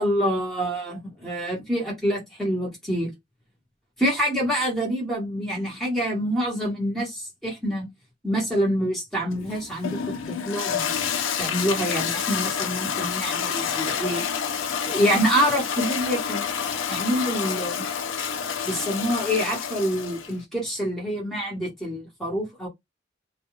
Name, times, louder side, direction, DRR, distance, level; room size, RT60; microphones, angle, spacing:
voice 1, 0.0-3.1 4.0-7.9 8.2-10.0 10.3-10.9 11.4-14.2 14.8-16.6 16.9-17.9 18.6-22.7, equal, ahead, 1.0 m, -26 dB
Toilet flush, 9.3-20.4, left 7 dB, 85° left, 0.4 m, -28 dB
2.3 x 2.2 x 3.0 m
head